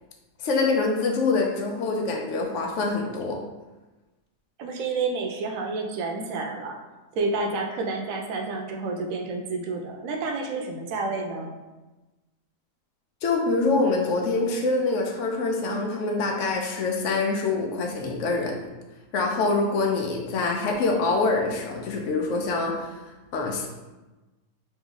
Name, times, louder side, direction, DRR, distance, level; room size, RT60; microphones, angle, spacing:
voice 1, 0.4-3.4 13.2-18.5 19.1-22.9 23.3-23.7, left 3 dB, 70° left, 1 dB, 0.9 m, -25 dB
voice 2, 4.6-6.8 7.2-11.5, right 3 dB, 75° right, 3 dB, 1.0 m, -29 dB
3.1 x 2.9 x 3.7 m, 1.1 s
omnidirectional pair, 1.4 m